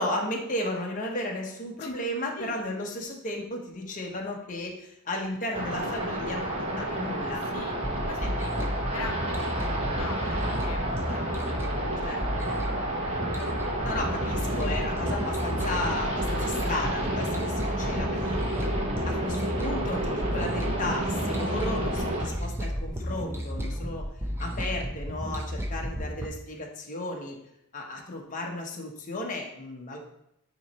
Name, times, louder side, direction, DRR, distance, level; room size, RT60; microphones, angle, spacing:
voice 1, 0.0-7.4 12.0-12.6 13.8-18.1 19.1-24.1 24.4-27.4 27.7-30.0, left 1 dB, 35° left, 1 dB, 1.0 m, -34 dB
sound 1, 5.5-22.2, right 1 dB, 30° right, 1.2 m, -31 dB
voice 2, 7.5-10.2 10.6-11.4 18.1-18.7 19.1-19.2, left 4 dB, 85° left, 5 dB, 0.6 m, -41 dB
sound 2, 7.8-26.3, equal, 10° right, 0.6 m, -33 dB
9.2 x 3.1 x 4.2 m, 0.78 s
head